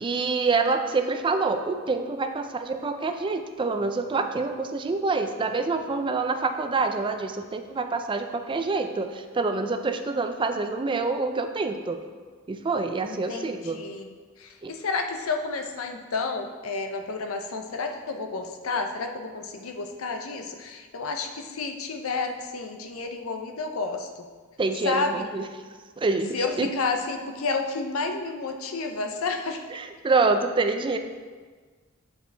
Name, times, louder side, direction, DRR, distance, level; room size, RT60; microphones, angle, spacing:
voice 1, 0.0-12.0 12.5-13.8 14.6-14.7 24.6-25.4 26.0-26.7 29.7-31.0, right 3 dB, 25° right, 7 dB, 0.4 m, -26 dB
voice 2, 13.0-14.1 14.4-24.3 24.8-25.3 26.3-29.6, left 4 dB, 85° left, 5 dB, 0.6 m, -31 dB
7.5 x 4.8 x 3.3 m, 1.5 s
head